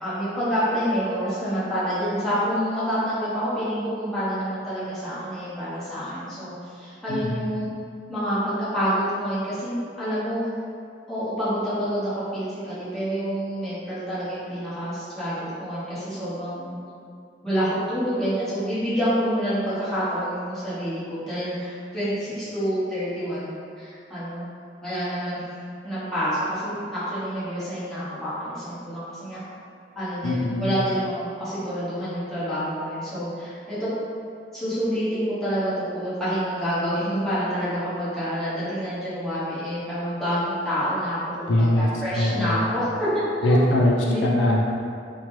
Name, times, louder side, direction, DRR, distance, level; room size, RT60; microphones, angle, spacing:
voice 1, 0.0-7.6 8.1-10.4 11.1-16.8 17.4-24.4 24.8-25.4 25.8-29.4 29.9-33.9 34.5-43.6 44.0-44.2, equal, ahead, -13 dB, 1.0 m, -27 dB
voice 2, 7.1-7.5 30.2-30.8 41.5-42.7 43.4-44.8, left 1 dB, 85° left, -2 dB, 0.4 m, -22 dB
3.0 x 2.1 x 3.0 m, 2.4 s
head